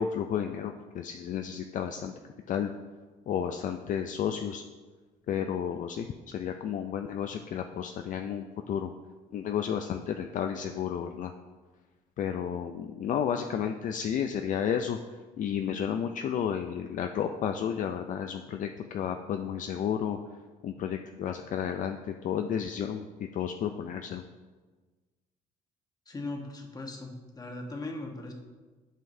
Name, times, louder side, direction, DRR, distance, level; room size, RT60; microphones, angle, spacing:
voice 1, 0.0-2.1 2.5-2.7 3.3-4.6 5.3-8.9 9.3-11.3 12.2-15.0 15.4-20.2 20.6-24.2, left 8 dB, 50° left, 6 dB, 0.4 m, -32 dB
voice 2, 26.1-28.3, left 2 dB, 20° left, 1 dB, 1.2 m, -39 dB
11.0 x 5.6 x 2.7 m, 1.3 s
cardioid pair, 110°, 17 cm